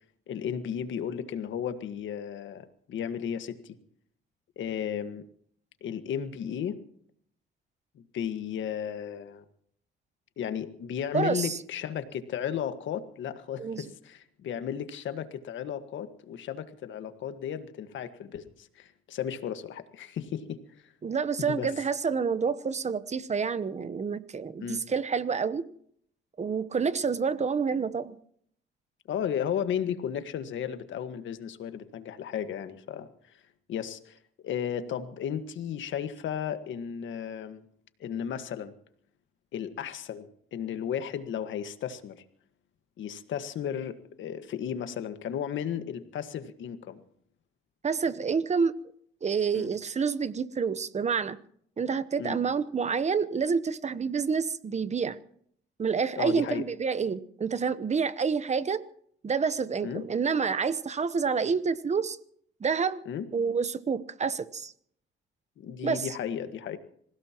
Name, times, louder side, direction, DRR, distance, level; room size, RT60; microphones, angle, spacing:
voice 1, 0.3-3.8 4.6-5.2 5.8-6.8 7.9-9.4 10.4-20.6 21.4-21.7 24.6-24.8 29.1-33.1 33.7-37.6 38.0-38.7 39.5-42.2 43.0-47.0 49.5-49.7 52.2-52.4 56.2-56.6 59.8-60.0 63.0-63.3 65.6-66.8, left 8 dB, 75° left, 10 dB, 1.6 m, -34 dB
voice 2, 11.1-11.6 13.6-13.8 21.0-25.7 26.4-28.2 47.8-48.7 49.2-51.4 51.8-55.2 55.8-58.8 59.2-62.2 62.6-63.0 63.3-64.7 65.8-66.1, right 5 dB, 35° right, 15 dB, 1.0 m, -28 dB
26.5 x 16.5 x 3.0 m, 0.64 s
cardioid pair, 90°, 20 cm